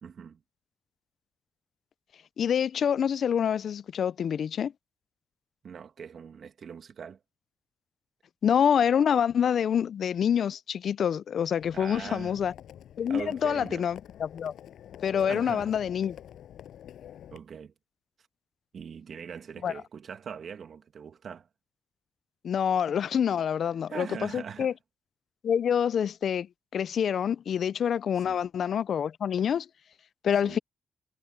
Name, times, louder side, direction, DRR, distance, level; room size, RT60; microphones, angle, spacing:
voice 1, 0.0-0.4 5.6-7.2 11.7-12.4 13.1-13.9 15.3-15.7 17.3-17.7 18.7-21.5 23.9-24.8 28.3-28.4 30.4-30.6, right 7 dB, 60° right, 2.2 m, -41 dB
voice 2, 2.4-4.7 8.4-12.5 13.0-14.5 15.0-16.2 19.6-19.7 22.4-24.7 25.4-26.5 26.7-29.7 30.2-30.6, left 8 dB, 65° left, 0.4 m, -26 dB
Livestock farm animals working animals, 11.6-17.4, left 10 dB, 80° left, 7.1 m, -47 dB
cardioid pair, 90°, 0 cm